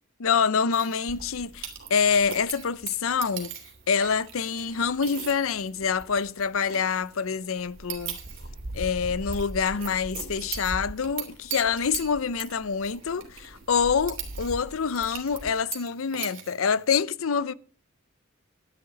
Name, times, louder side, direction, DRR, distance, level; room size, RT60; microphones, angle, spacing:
voice 1, 0.2-3.5 3.9-8.2 8.7-17.5, left 6 dB, 90° left, 0.6 m, -26 dB
sound 1, 0.7-17.0, right 10 dB, 65° right, 3.1 m, -42 dB
sound 2, 1.1-7.1 7.6-15.5, right 1 dB, 45° right, 1.1 m, -42 dB
11.0 x 10.5 x 5.1 m
head